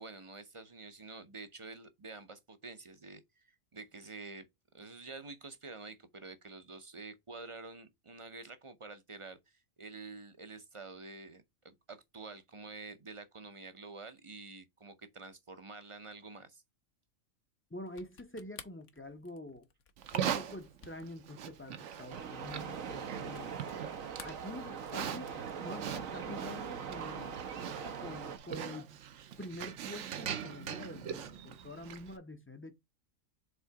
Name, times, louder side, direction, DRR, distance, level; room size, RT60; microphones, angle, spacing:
voice 1, 0.0-4.5 4.7-16.6, right 3 dB, 35° right, 0.6 m, -48 dB
voice 2, 17.7-19.7 20.1-23.5 24.2-27.4 27.8-29.0 29.4-32.7, left 1 dB, 15° left, 0.6 m, -46 dB
sound 1, 17.9-23.9 24.1-25.1, left 7 dB, 70° left, 1.2 m, -54 dB
Livestock farm animals working animals, 20.0-32.2, right 9 dB, 65° right, 1.0 m, -42 dB
sound 2, 22.1-28.4, right 6 dB, 85° right, 1.3 m, -41 dB
5.4 x 3.7 x 4.7 m
omnidirectional pair, 1.4 m